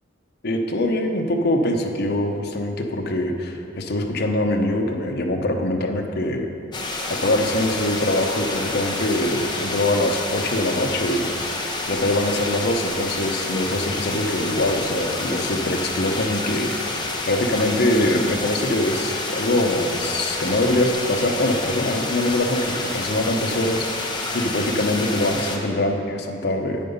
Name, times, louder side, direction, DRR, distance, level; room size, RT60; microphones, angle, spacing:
voice 1, 0.4-6.5 7.1-11.3 11.9-26.8, left 1 dB, 55° left, 3 dB, 0.8 m, -23 dB
sound 1, 6.7-25.6, left 2 dB, 25° left, 1.0 m, -28 dB
8.9 x 7.9 x 5.4 m, 2.9 s
head